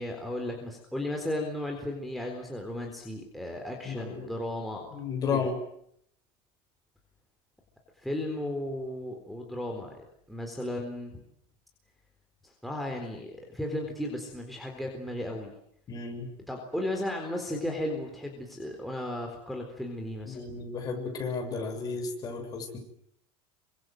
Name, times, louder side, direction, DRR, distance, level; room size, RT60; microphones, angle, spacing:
voice 1, 0.0-4.9 5.3-5.5 8.0-10.0 10.3-11.2 12.4-15.5 16.5-20.5, left 1 dB, ahead, 0 dB, 3.9 m, -35 dB
voice 2, 3.8-4.3 4.9-5.6 15.9-16.3 20.3-22.8, left 5 dB, 25° left, 3 dB, 7.2 m, -33 dB
28.5 x 25.5 x 7.8 m, 0.73 s
cardioid pair, 155°, 14 cm